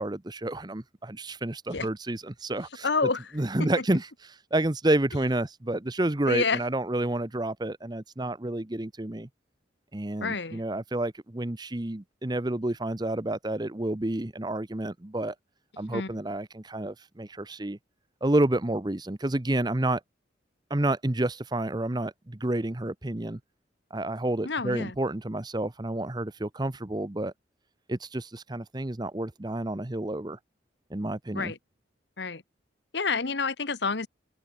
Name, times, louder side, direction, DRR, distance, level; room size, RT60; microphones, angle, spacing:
voice 1, 0.0-2.9 3.3-4.1 4.5-9.3 9.9-15.3 15.8-17.8 18.2-20.0 20.7-23.4 23.9-27.3 27.9-30.4 30.9-31.5, right 1 dB, 20° right, 0.8 m, -29 dB
voice 2, 2.8-3.3 3.6-3.8 6.3-6.6 10.2-10.6 15.8-16.1 24.4-24.9 31.3-31.6 32.2-32.4 32.9-34.1, left 4 dB, 65° left, 1.3 m, -28 dB
open air
head